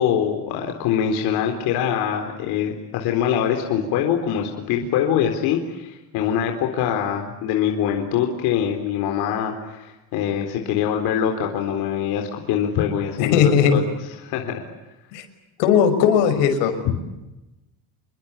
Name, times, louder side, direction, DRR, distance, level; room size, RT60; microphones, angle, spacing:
voice 1, 0.0-13.8 14.2-14.6 16.9-17.0, left 9 dB, 60° left, 3 dB, 4.0 m, -23 dB
voice 2, 13.2-13.8 15.1-15.2 15.6-16.7, left 7 dB, 85° left, 7 dB, 6.3 m, -17 dB
28.5 x 22.5 x 8.4 m, 0.99 s
cardioid pair, 175°, 42 cm